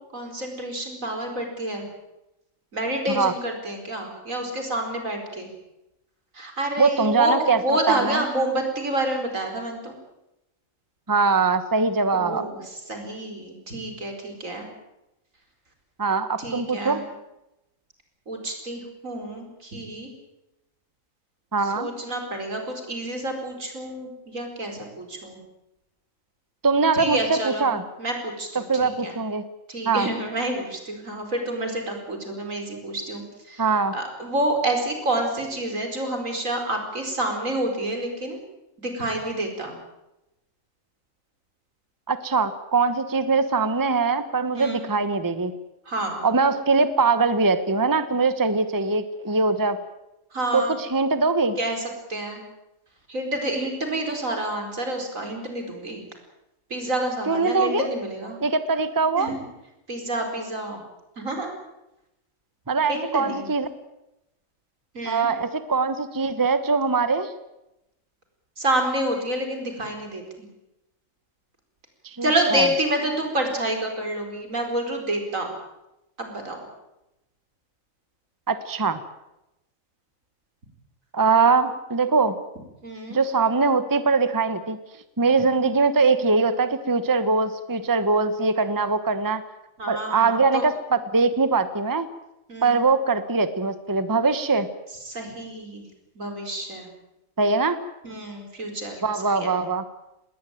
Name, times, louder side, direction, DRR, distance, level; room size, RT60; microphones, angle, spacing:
voice 1, 0.1-1.9 2.7-5.5 6.3-10.0 12.1-14.7 16.4-17.1 18.3-20.1 21.6-25.4 26.9-29.2 29.7-33.7 33.9-38.4 38.8-39.8 44.5-44.9 45.8-46.2 50.3-50.7 51.6-52.4 53.1-56.0 56.7-58.4 59.2-59.5 59.9-60.8 61.2-61.5 62.9-63.5 64.9-65.3 68.6-70.5 72.2-75.5 76.2-76.6 82.8-83.2 89.8-90.6 92.5-92.8 95.0-95.8 96.1-96.9 98.0-99.6, right 1 dB, 80° right, 4 dB, 5.1 m, -28 dB
voice 2, 6.8-8.2 11.1-12.4 16.0-17.0 21.5-21.9 26.6-27.8 28.5-29.4 29.8-30.1 33.6-33.9 42.1-45.5 46.2-49.8 50.5-51.6 57.3-57.9 58.4-59.3 62.7-63.7 65.0-67.3 72.0-72.7 78.5-79.0 81.1-82.3 83.1-84.8 85.2-89.4 89.9-92.1 92.6-94.7 97.4-97.8 99.0-99.8, right 4 dB, 15° right, 12 dB, 1.0 m, -22 dB
20.0 x 18.5 x 9.1 m, 0.89 s
omnidirectional pair, 1.4 m